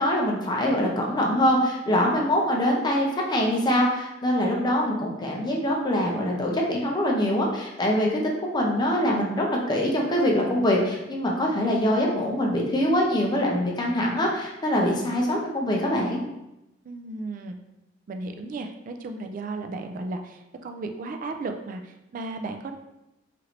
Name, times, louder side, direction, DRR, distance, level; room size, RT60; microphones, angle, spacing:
voice 1, 0.0-16.2, equal, 25° left, -1 dB, 0.5 m, -24 dB
voice 2, 16.9-17.6 18.1-22.8, right 3 dB, 45° right, 5 dB, 0.3 m, -34 dB
3.0 x 2.5 x 2.9 m, 0.92 s
head